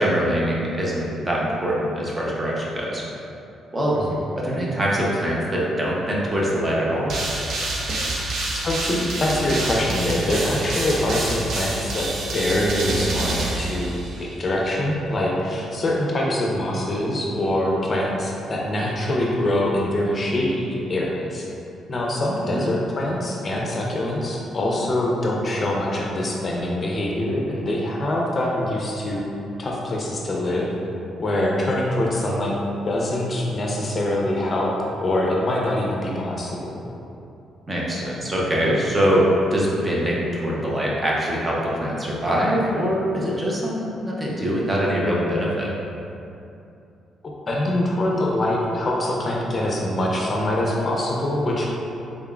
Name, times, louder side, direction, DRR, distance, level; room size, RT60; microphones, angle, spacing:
voice 1, 0.0-3.0 3.7-4.0 4.4-7.1 22.5-22.7 37.7-45.7, equal, 25° right, -5 dB, 0.7 m, -23 dB
sound 1, 7.1-14.4, right 2 dB, 65° right, 0.6 m, -27 dB
voice 2, 8.5-21.5 21.9-29.2 29.6-30.7 31.2-32.6 32.9-34.7 35.0-36.8 47.5-51.7, left 1 dB, 35° left, -2 dB, 0.5 m, -24 dB
3.7 x 3.5 x 2.4 m, 2.8 s
cardioid pair, 90°, 0 cm